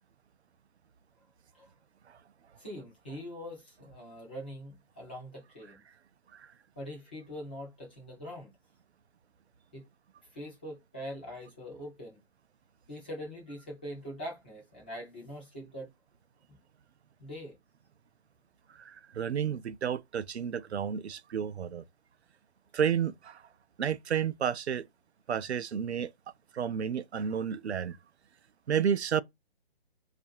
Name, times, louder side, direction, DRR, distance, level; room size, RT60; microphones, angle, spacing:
voice 1, 2.6-5.8 6.8-8.5 9.7-9.8 10.3-12.2 12.9-15.9 17.2-17.5, equal, 10° left, 0.4 m, -43 dB
voice 2, 18.8-21.8 22.7-23.4 23.8-24.8 25.3-26.1 26.5-28.0 28.7-29.2, right 8 dB, 90° right, 0.5 m, -31 dB
4.5 x 2.5 x 2.7 m
figure-of-eight pair, 145°, 32 cm